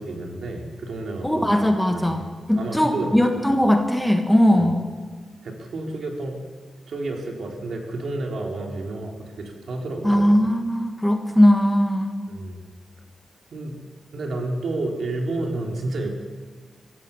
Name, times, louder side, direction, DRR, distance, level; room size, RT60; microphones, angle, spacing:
voice 1, 0.0-1.5 1.9-2.2 2.6-3.2 3.5-3.6 4.5-4.7 5.4-6.4 6.9-10.2 12.3-12.6 13.5-13.8 14.1-16.1, right 2 dB, 60° right, 2 dB, 4.0 m, -30 dB
voice 2, 1.2-2.2 2.5-4.9 10.0-12.2, equal, 5° left, 5 dB, 1.5 m, -19 dB
23.5 x 16.5 x 7.3 m, 1.5 s
wide cardioid pair, 150°, 0 cm